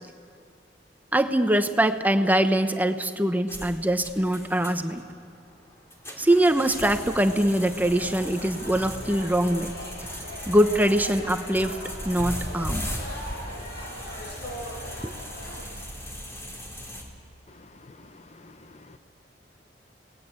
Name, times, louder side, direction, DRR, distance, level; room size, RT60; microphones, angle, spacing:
voice 1, 1.1-5.0 6.2-9.7 10.5-11.8 12.0-12.9 15.0-15.1, right 1 dB, 10° right, 8 dB, 0.9 m, -23 dB
sound 1, 3.5-17.0, equal, 15° left, 3.4 m, -38 dB
sound 2, 6.8-15.6, equal, 65° left, 6.7 m, -40 dB
voice 2, 17.5-19.0, left 2 dB, 40° left, 10 dB, 0.8 m, -50 dB
29.5 x 19.0 x 8.3 m, 2.3 s
head